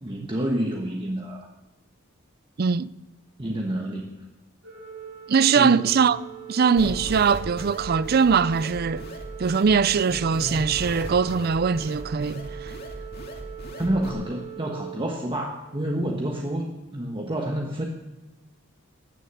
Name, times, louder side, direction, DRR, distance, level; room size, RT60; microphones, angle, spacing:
voice 1, 0.0-1.5 3.4-4.1 5.6-5.9 13.8-17.9, right 1 dB, 25° right, 1.3 m, -28 dB
voice 2, 2.6-2.9 5.3-6.2 6.5-9.1 9.4-12.7, right 6 dB, 50° right, 0.4 m, -21 dB
Organ, 4.6-15.7, right 11 dB, 80° right, 6.7 m, -41 dB
sound 1, 6.8-14.1, left 1 dB, 50° left, 2.4 m, -37 dB
16.5 x 10.0 x 7.0 m
head